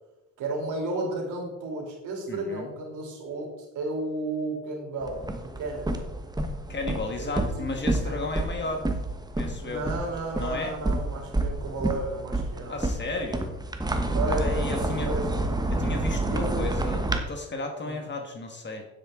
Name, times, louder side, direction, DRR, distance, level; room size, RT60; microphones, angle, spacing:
voice 1, 0.4-3.5 3.7-6.0 7.2-7.4 8.0-8.1 9.6-13.1 14.1-15.3 16.2-16.6 17.8-18.0, right 2 dB, 80° right, 0 dB, 3.2 m, -33 dB
voice 2, 2.3-2.7 6.7-8.9 9.4-9.9 10.3-10.8 12.7-13.6 14.4-15.1 15.7-18.9, left 3 dB, 35° left, 3 dB, 1.6 m, -34 dB
sound 1, 5.0-17.2, right 2 dB, 15° right, 1.1 m, -29 dB
9.1 x 8.1 x 3.8 m, 1.0 s
cardioid pair, 90°, 30 cm